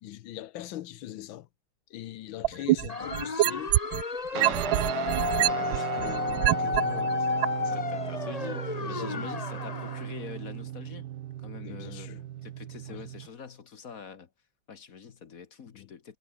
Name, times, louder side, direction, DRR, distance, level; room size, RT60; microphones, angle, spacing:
voice 1, 0.0-1.5 1.9-3.8 4.3-7.8 8.8-9.3 11.6-12.2 12.9-13.1 15.7-15.9, left 13 dB, 80° left, 1.6 m, -42 dB
sound 1, 2.4-4.0 4.4-6.8 7.4-7.5, right 16 dB, 80° right, 1.4 m, -24 dB
sound 2, 2.9-10.1, left 4 dB, 25° left, 0.9 m, -32 dB
Guitar, 4.3-13.3, right 13 dB, 65° right, 1.2 m, -37 dB
voice 2, 7.7-11.1 11.4-12.1 12.4-14.3 14.7-16.2, left 6 dB, 50° left, 1.5 m, -44 dB
omnidirectional pair, 2.2 m